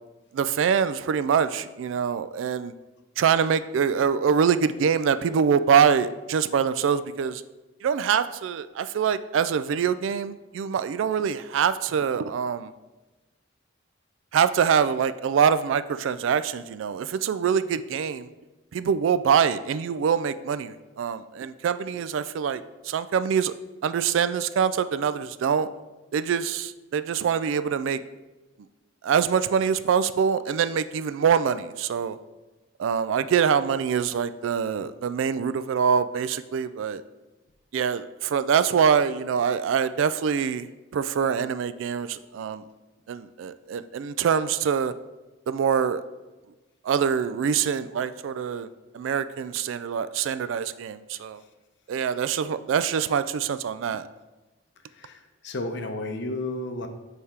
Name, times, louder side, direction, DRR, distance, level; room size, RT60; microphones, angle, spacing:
voice 1, 0.3-2.7 3.2-7.4 7.8-12.7 14.3-18.3 18.7-23.5 23.8-25.7 26.1-28.0 29.0-32.2 32.8-37.0 37.7-42.6 43.1-44.9 45.5-46.0 46.8-48.7 48.9-51.4 51.9-54.1, right 7 dB, 70° right, 13 dB, 0.3 m, -24 dB
voice 2, 54.9-56.9, left 2 dB, 55° left, 6 dB, 0.6 m, -32 dB
6.5 x 3.5 x 4.3 m, 1.1 s
head